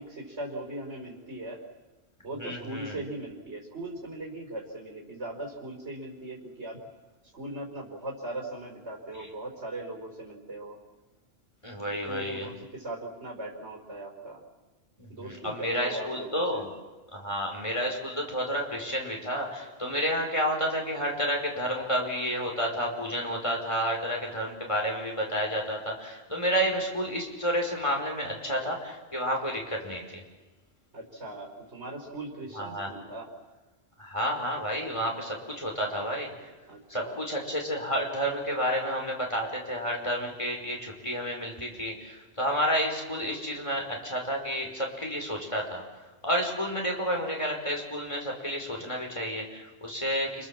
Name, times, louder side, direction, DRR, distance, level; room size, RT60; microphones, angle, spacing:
voice 1, 0.0-1.6 2.2-6.8 7.3-10.8 11.9-14.4 15.1-16.6 30.9-33.3 36.7-37.2, right 1 dB, 60° right, -1 dB, 4.9 m, -39 dB
voice 2, 2.4-3.0 11.6-12.5 15.0-16.7 17.1-30.2 32.5-32.9 34.0-36.3 36.9-45.8 46.2-50.5, equal, 25° left, 0 dB, 5.5 m, -30 dB
30.0 x 26.5 x 7.5 m, 1.1 s
omnidirectional pair, 1.3 m